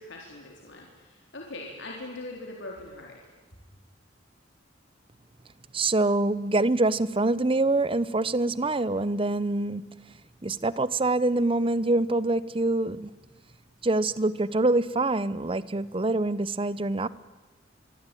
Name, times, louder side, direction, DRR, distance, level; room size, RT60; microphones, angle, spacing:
voice 1, 0.0-3.2, left 2 dB, 70° left, 4.1 m, -41 dB
voice 2, 5.7-10.1 10.4-13.1 13.8-17.1, right 2 dB, 30° right, 0.8 m, -25 dB
25.5 x 23.5 x 9.2 m
head